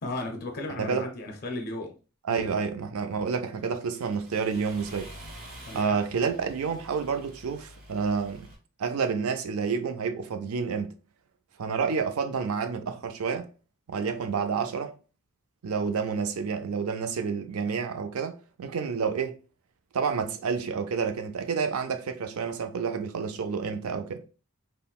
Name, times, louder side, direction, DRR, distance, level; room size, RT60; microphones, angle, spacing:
voice 1, 0.0-1.9 2.3-2.5 5.7-6.0, left 2 dB, 45° left, 0.5 m, -35 dB
voice 2, 0.8-1.1 2.3-5.1 5.7-8.5 8.8-10.9 11.6-13.5 13.9-14.9 15.6-19.4 19.9-24.2, right 5 dB, 75° right, 0.4 m, -29 dB
Accelerating revving vroom, 3.3-8.5, right 1 dB, 40° right, 1.0 m, -48 dB
3.8 x 2.0 x 2.3 m
head